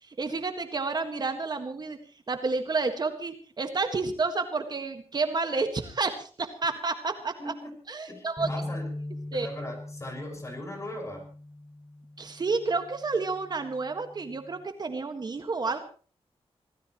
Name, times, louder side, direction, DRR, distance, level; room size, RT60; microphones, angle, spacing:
voice 1, 0.0-2.0 2.3-7.5 7.9-8.5 9.3-9.5 12.2-15.8, right 4 dB, 40° right, 7 dB, 1.7 m, -30 dB
voice 2, 7.4-7.8 8.1-8.9 9.3-11.3, left 1 dB, 30° left, 4 dB, 5.7 m, -39 dB
sound 1, 8.4-14.6, left 1 dB, ahead, 5.9 m, -41 dB
25.5 x 17.5 x 3.1 m, 0.40 s
wide cardioid pair, 175°, 11 cm